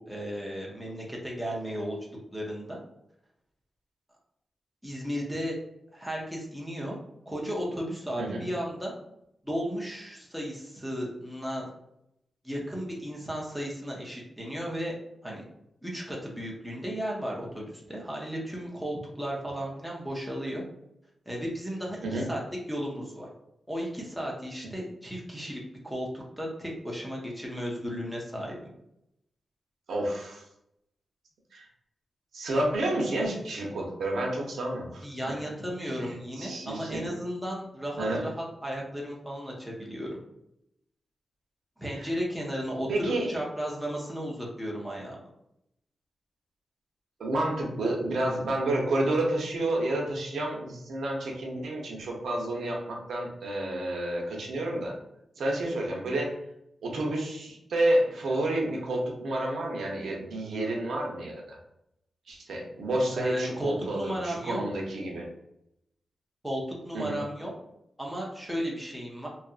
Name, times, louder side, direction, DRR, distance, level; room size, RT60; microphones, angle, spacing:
voice 1, 0.0-2.0 2.3-2.8 4.8-5.6 5.9-7.0 7.3-8.9 9.4-11.6 12.4-14.9 15.2-15.4 15.8-20.6 21.3-22.4 22.7-23.3 23.7-28.6 35.0-38.3 38.6-40.2 41.8-45.2 63.1-64.6 66.4-67.5 68.0-69.3, equal, ahead, -3 dB, 0.5 m, -34 dB
voice 2, 29.9-30.4 31.5-31.7 32.3-35.4 35.8-37.1 38.0-38.3 42.0-42.1 42.9-43.4 47.2-55.0 55.4-56.4 56.8-61.6 62.3-65.3 66.9-67.2, right 1 dB, 75° right, -1 dB, 0.6 m, -30 dB
2.7 x 2.4 x 2.3 m, 0.80 s
wide cardioid pair, 180°, 0 cm